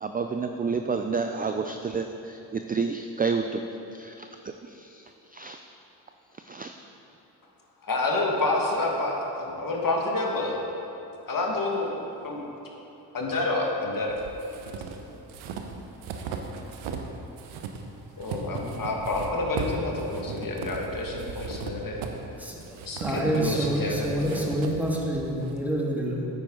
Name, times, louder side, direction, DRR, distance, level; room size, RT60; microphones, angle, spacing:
voice 1, 0.0-3.6 3.9-4.3 4.7-5.0 5.3-5.6 6.4-6.7, right 5 dB, 20° right, 6 dB, 0.4 m, -29 dB
voice 2, 7.8-10.6 11.3-11.9 12.2-12.4 13.1-14.1 18.2-22.0 22.8-24.5, left 2 dB, 45° left, 0 dB, 1.8 m, -28 dB
sound 1, 14.1-17.1 17.4-25.5, right 5 dB, 90° right, 0.8 m, -37 dB
voice 3, 23.0-26.3, right 1 dB, 5° right, -3 dB, 1.8 m, -27 dB
9.1 x 9.0 x 3.8 m, 2.9 s
supercardioid pair, 65°, 47 cm